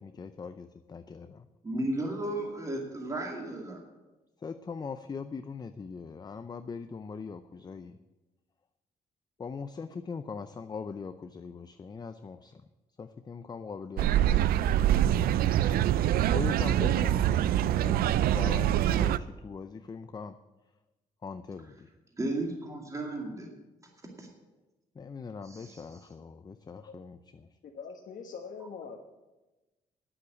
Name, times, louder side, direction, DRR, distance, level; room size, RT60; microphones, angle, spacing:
voice 1, 0.0-1.5 4.4-8.0 9.4-12.7 13.0-15.5 16.3-17.5 17.8-20.4 21.2-21.9 24.9-27.6, left 5 dB, 25° left, 10 dB, 0.5 m, -41 dB
voice 2, 1.6-3.8 22.2-23.5 24.2-24.3 25.4-25.8, right 1 dB, 20° right, 1 dB, 2.3 m, -34 dB
sound 1, 14.0-19.2, right 11 dB, 85° right, 0.4 m, -25 dB
voice 3, 27.6-29.0, left 5 dB, 60° left, 1 dB, 1.2 m, -43 dB
9.6 x 8.2 x 8.3 m, 1.1 s
cardioid pair, 105°, 15 cm